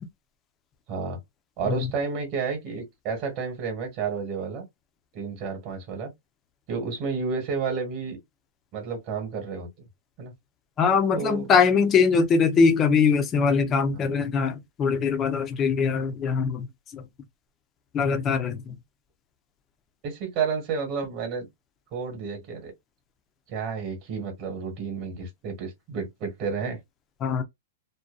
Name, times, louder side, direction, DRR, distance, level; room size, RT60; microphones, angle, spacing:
voice 1, 1.6-4.6 5.1-6.1 6.7-8.2 8.7-9.7 10.2-10.3 11.1-11.5 13.9-14.2 20.0-21.5 21.9-22.7 23.5-26.8, right 5 dB, 30° right, 1.2 m, -31 dB
voice 2, 10.8-16.7 16.9-17.0 17.9-18.7 27.2-27.4, left 5 dB, 20° left, 0.6 m, -22 dB
2.5 x 2.2 x 2.3 m
hypercardioid pair, 150°, 0 cm